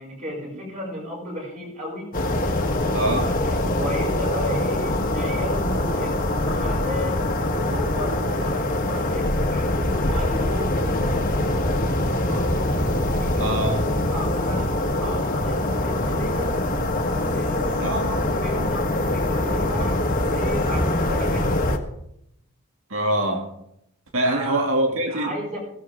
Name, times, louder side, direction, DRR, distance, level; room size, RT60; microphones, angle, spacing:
voice 1, 0.0-2.1 2.9-12.6 13.2-13.7 14.1-16.6 17.3-21.6 24.2-24.7 25.1-25.6, equal, 35° right, 6.5 m, -34 dB
sound 1, 2.1-21.8, left 1 dB, 40° left, 1.5 m, -23 dB
voice 2, 2.9-3.4 13.4-13.8 17.8-18.0 22.9-23.5 24.1-25.4, right 1 dB, 65° right, 2.4 m, -24 dB
sound 2, 12.3-21.1, left 1 dB, 5° right, 2.1 m, -38 dB
18.0 x 15.5 x 3.6 m
head